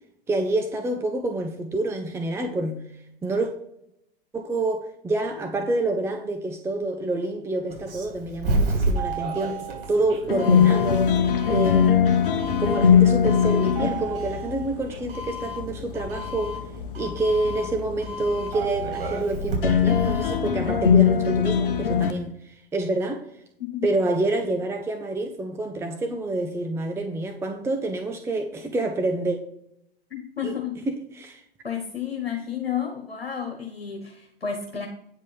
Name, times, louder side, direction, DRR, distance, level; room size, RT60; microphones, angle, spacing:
voice 1, 0.3-2.8 3.2-3.5 4.3-11.1 11.5-12.1 12.6-16.6 17.0-23.2 23.8-29.4 30.4-30.6 30.9-31.4, right 2 dB, 10° right, 5 dB, 0.7 m, -27 dB
Doorbell, 7.7-20.5, right 2 dB, 65° right, 4.0 m, -31 dB
sound 1, 10.3-22.1, left 7 dB, 60° left, 1.0 m, -22 dB
voice 2, 30.1-30.7 31.6-34.9, left 8 dB, 80° left, 1 dB, 1.6 m, -31 dB
9.4 x 5.2 x 5.6 m, 0.74 s
figure-of-eight pair, 95°, 30 cm